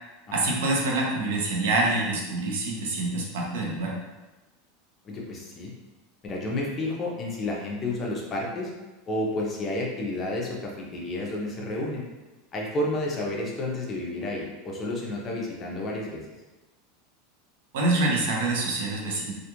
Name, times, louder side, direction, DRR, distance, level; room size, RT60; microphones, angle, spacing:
voice 1, 0.3-3.9 17.7-19.3, right 2 dB, 75° right, -2 dB, 0.7 m, -26 dB
voice 2, 5.0-5.7 6.2-8.7 9.1-12.0 12.5-16.2, left 1 dB, 20° left, -2 dB, 0.5 m, -31 dB
2.4 x 2.3 x 2.9 m, 1.1 s
supercardioid pair, 160°, 0 cm